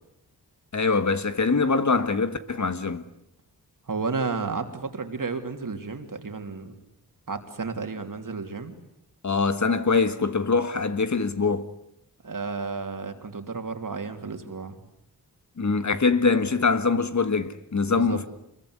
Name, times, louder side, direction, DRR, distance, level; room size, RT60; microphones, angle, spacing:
voice 1, 0.7-3.0 9.2-11.7 15.6-18.2, left 4 dB, 45° left, 1.6 m, -23 dB
voice 2, 3.9-6.7 7.3-8.7 12.2-14.8 17.9-18.2, right 4 dB, 50° right, 3.2 m, -32 dB
26.5 x 22.0 x 9.8 m
wide cardioid pair, 105°, 40 cm